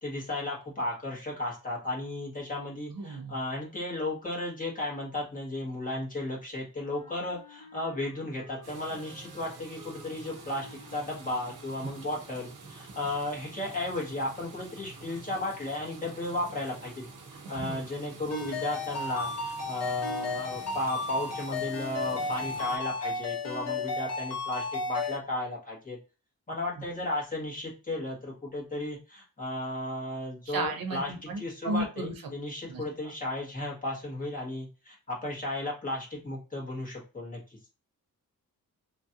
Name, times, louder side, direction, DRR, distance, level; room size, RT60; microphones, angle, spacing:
voice 1, 0.0-17.0 17.5-26.0 26.5-37.4, left 1 dB, 25° left, -4 dB, 1.3 m, -34 dB
voice 2, 2.9-3.3 11.8-11.9 17.4-17.8 30.5-32.1 32.7-32.8, right 2 dB, 90° right, 4 dB, 0.8 m, -34 dB
Wind instrument woodwind instrument, 6.7-12.5, left 3 dB, 70° left, 0.9 m, -54 dB
sound 1, 8.6-22.8, right 4 dB, 65° right, 0.9 m, -48 dB
Ringtone, 18.3-25.2, left 3 dB, 50° left, 1.3 m, -34 dB
3.0 x 2.5 x 2.8 m, 0.32 s
wide cardioid pair, 145°, 33 cm